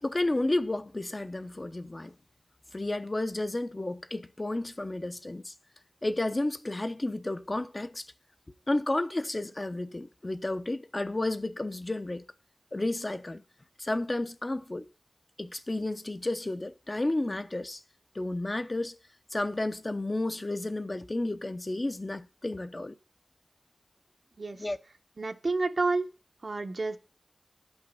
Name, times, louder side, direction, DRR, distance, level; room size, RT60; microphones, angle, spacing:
voice 1, 0.0-2.1 2.7-5.5 6.0-8.1 8.7-12.2 12.7-13.4 13.8-14.8 15.4-17.8 18.1-19.0 19.3-22.9 24.6-24.8, left 2 dB, 40° left, 0.7 m, -32 dB
voice 2, 24.4-24.7 25.2-26.1 26.4-27.0, right 3 dB, 70° right, 1.0 m, -29 dB
10.5 x 5.7 x 5.5 m
wide cardioid pair, 55°, 0 cm